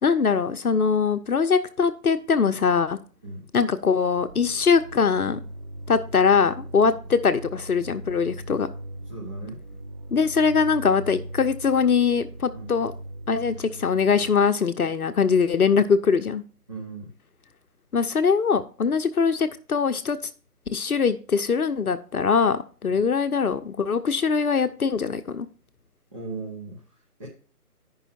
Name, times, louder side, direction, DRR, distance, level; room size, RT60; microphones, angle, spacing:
voice 1, 0.0-3.0 3.5-5.4 5.9-8.7 10.1-12.9 13.3-16.4 17.9-20.2 20.7-25.5, left 5 dB, 65° left, 10 dB, 0.8 m, -22 dB
sound 1, 4.1-14.4, right 1 dB, 40° right, 1.9 m, -39 dB
voice 2, 9.1-9.6 12.5-12.7 16.7-17.1 22.8-23.0 26.1-27.3, right 3 dB, 20° right, -5 dB, 1.2 m, -37 dB
10.0 x 5.5 x 4.3 m, 0.39 s
figure-of-eight pair, 165°, 47 cm